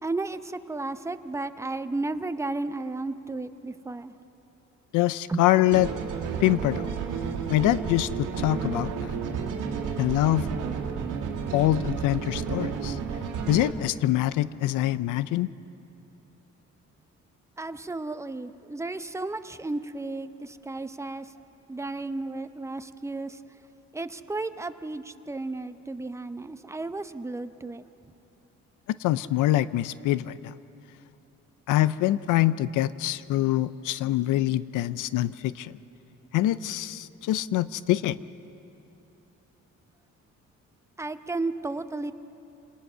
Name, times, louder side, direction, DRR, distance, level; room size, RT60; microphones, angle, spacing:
voice 1, 0.0-4.1 5.3-5.8 17.6-21.3 21.7-23.4 23.9-27.8 41.0-42.1, right 2 dB, 10° right, 10 dB, 0.7 m, -33 dB
voice 2, 4.9-5.9 6.4-6.9 7.5-9.1 10.0-10.5 11.5-13.0 13.5-15.5 29.0-30.5 31.7-35.7 36.3-38.2, left 14 dB, 90° left, 17 dB, 0.6 m, -24 dB
sound 1, 5.7-13.7, right 6 dB, 90° right, 1.9 m, -31 dB
27.0 x 19.0 x 5.6 m, 3.0 s
cardioid pair, 90°, 30 cm